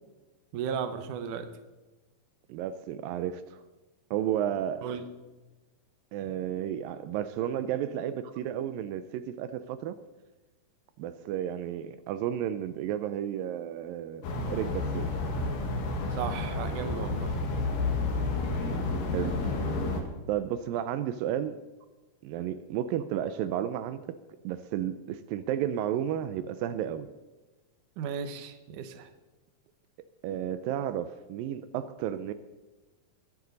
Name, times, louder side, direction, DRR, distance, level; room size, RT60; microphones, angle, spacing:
voice 1, 0.5-1.5 4.8-5.1 16.1-17.3 28.0-29.1, right 7 dB, 70° right, 9 dB, 2.4 m, -35 dB
voice 2, 2.5-3.6 4.1-4.9 6.1-10.0 11.0-15.1 18.2-18.8 19.1-19.5 20.3-21.6 22.2-24.0 24.4-27.1 30.2-32.3, right 10 dB, 85° right, 11 dB, 2.3 m, -32 dB
sound 1, 14.2-20.0, left 3 dB, 75° left, 3.2 m, -30 dB
21.5 x 9.5 x 4.0 m, 1.2 s
omnidirectional pair, 4.0 m